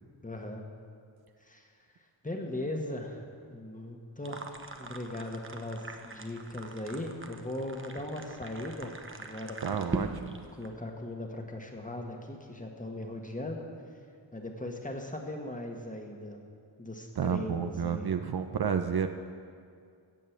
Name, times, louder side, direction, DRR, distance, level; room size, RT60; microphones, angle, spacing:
voice 1, 0.2-0.6 1.4-1.7 2.2-3.2 3.5-4.5 4.8-9.9 10.6-13.7 14.3-16.4 16.8-18.1, left 1 dB, 15° left, 2 dB, 1.5 m, -39 dB
sound 1, 4.2-10.7, right 3 dB, 25° right, 0.9 m, -41 dB
voice 2, 9.6-10.4 17.2-19.1, right 7 dB, 55° right, 7 dB, 0.7 m, -30 dB
15.5 x 5.4 x 8.0 m, 2.3 s
wide cardioid pair, 90°, 45 cm